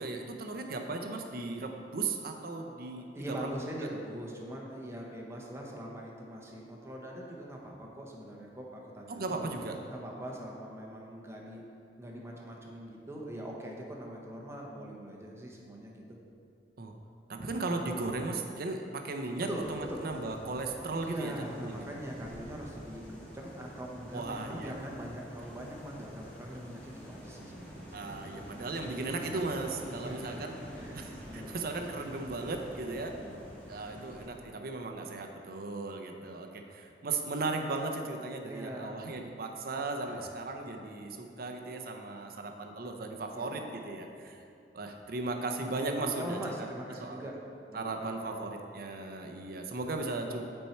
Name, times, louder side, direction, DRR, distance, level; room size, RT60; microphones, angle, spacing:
voice 1, 0.0-3.1 3.4-3.5 9.1-9.8 16.8-16.9 17.3-21.8 24.1-24.8 27.9-30.5 30.9-31.1 31.3-33.1 33.7-44.4 44.7-46.7 47.0-47.3 47.7-50.4, right 3 dB, 60° right, 3 dB, 0.7 m, -36 dB
voice 2, 2.9-9.5 9.8-11.6 12.0-16.2 19.4-20.0 21.0-28.1 29.8-30.4 30.7-31.7 32.8-34.1 38.4-39.1 40.0-40.2 41.0-41.1 43.3-43.5 46.0-47.4 47.7-48.4, equal, 15° right, -1 dB, 0.9 m, -42 dB
sound 1, 19.5-34.3, equal, 10° left, 1.6 m, -47 dB
8.6 x 4.5 x 4.4 m, 2.5 s
head